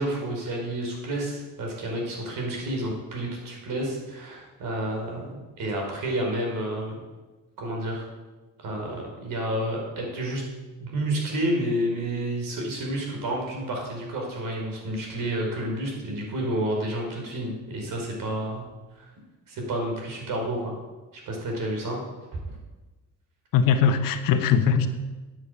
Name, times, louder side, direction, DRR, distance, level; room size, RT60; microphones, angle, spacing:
voice 1, 0.0-7.0 7.6-8.1 8.6-10.4 10.8-18.6 18.9-19.1 19.5-20.7 21.2-22.0, right 1 dB, 65° right, 0 dB, 4.9 m, -30 dB
voice 2, 23.5-24.9, left 7 dB, 75° left, 9 dB, 1.3 m, -20 dB
10.0 x 8.0 x 8.3 m, 1.2 s
supercardioid pair, 70°, 34 cm